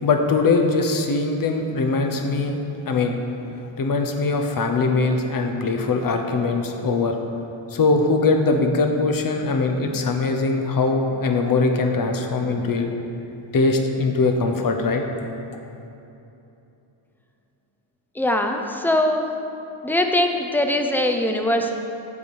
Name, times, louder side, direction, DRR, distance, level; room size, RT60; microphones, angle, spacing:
voice 1, 0.0-2.6 2.9-3.2 3.8-7.2 7.7-12.9 13.5-15.1, left 3 dB, 45° left, 4 dB, 0.8 m, -21 dB
voice 2, 18.2-19.3 19.8-21.7, left 1 dB, 5° left, 4 dB, 0.4 m, -21 dB
8.3 x 4.8 x 7.1 m, 2.9 s
wide cardioid pair, 165°, 49 cm